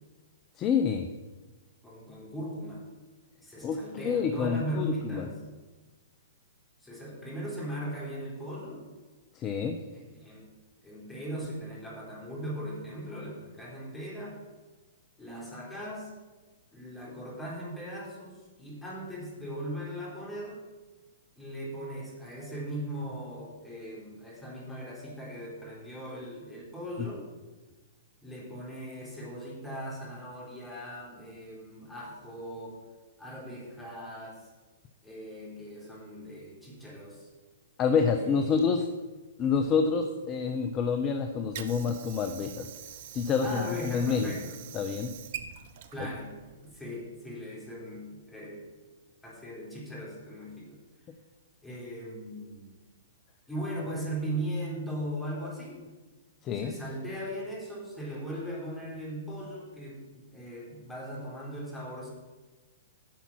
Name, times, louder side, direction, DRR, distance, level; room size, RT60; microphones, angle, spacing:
voice 1, 0.6-1.1 3.6-5.3 9.3-9.8 27.0-27.1 37.8-38.9 39.4-42.7 43.1-44.3 44.7-45.1 46.0-46.1 56.4-56.8, left 6 dB, 30° left, 7 dB, 0.7 m, -28 dB
voice 2, 1.8-2.9 3.4-5.4 6.8-8.8 9.9-10.5 10.8-14.4 15.2-16.1 16.7-20.6 21.4-27.3 28.2-32.8 33.2-34.4 35.0-37.3 38.1-38.6 43.4-44.6 45.9-46.3 46.6-48.7 49.2-50.8 51.6-52.7 53.5-55.8 56.6-62.1, equal, 10° left, -4 dB, 3.7 m, -39 dB
Water / Sink (filling or washing), 41.0-47.1, right 9 dB, 50° right, 0.8 m, -45 dB
10.5 x 5.8 x 7.1 m, 1.2 s
figure-of-eight pair, 115°, 0 cm